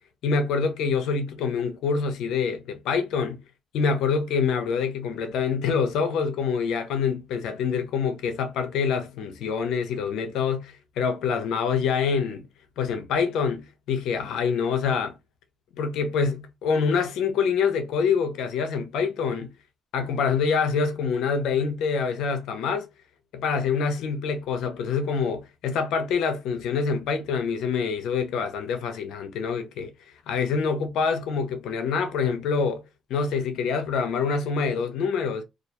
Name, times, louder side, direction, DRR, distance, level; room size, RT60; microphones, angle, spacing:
voice 1, 0.2-3.4 3.7-12.4 12.8-15.1 15.8-19.5 19.9-22.9 23.3-29.9 30.3-32.8 33.1-35.4, left 5 dB, 85° left, 0.5 m, -26 dB
2.3 x 2.2 x 2.8 m
cardioid pair, 90°, 0 cm